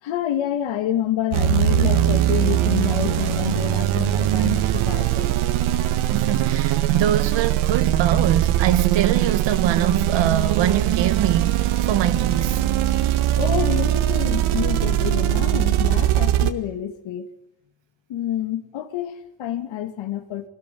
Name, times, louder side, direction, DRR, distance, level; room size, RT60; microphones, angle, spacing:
voice 1, 0.0-5.3 13.4-17.3 18.1-20.5, left 11 dB, 65° left, 2.8 m, -28 dB
sound 1, 1.3-16.5, right 12 dB, 85° right, 1.9 m, -21 dB
voice 2, 6.1-12.6, right 10 dB, 60° right, 1.9 m, -24 dB
25.0 x 19.0 x 9.6 m
cardioid pair, 160°, 48 cm